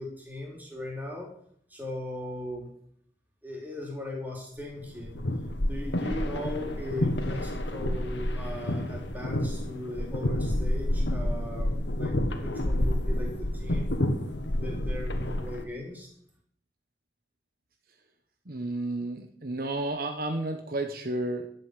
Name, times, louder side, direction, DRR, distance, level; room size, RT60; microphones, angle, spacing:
voice 1, 0.0-1.3 1.7-2.7 3.4-5.2 5.6-14.0 14.5-16.1, left 1 dB, 10° right, -1 dB, 3.6 m, -38 dB
sound 1, 4.8-15.6, left 1 dB, 75° left, 1.6 m, -29 dB
voice 2, 18.5-21.5, right 2 dB, 50° right, 6 dB, 1.2 m, -32 dB
11.5 x 8.2 x 8.4 m, 0.65 s
head